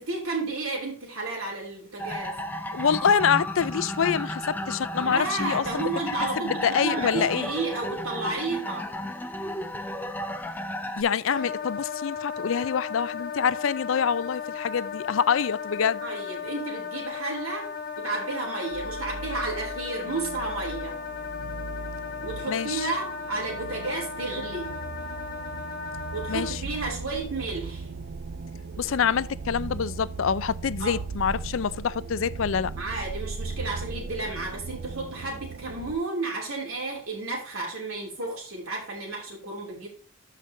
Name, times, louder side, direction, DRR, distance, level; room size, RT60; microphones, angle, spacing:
voice 1, 0.0-2.3 5.0-8.9 16.0-17.7 18.0-21.0 22.2-24.8 26.1-27.9 30.8-31.0 32.8-39.9, right 3 dB, 85° right, 2.8 m, -32 dB
sound 1, 2.0-11.0, left 1 dB, 10° left, 0.5 m, -33 dB
voice 2, 2.7-5.8 6.4-7.5 11.0-16.0 22.5-22.9 26.3-26.6 28.8-32.7, left 7 dB, 70° left, 0.4 m, -26 dB
Wind instrument woodwind instrument, 11.3-26.6, left 6 dB, 45° left, 0.8 m, -36 dB
sound 2, 18.6-36.0, right 4 dB, 60° right, 0.5 m, -38 dB
13.0 x 5.1 x 2.7 m
head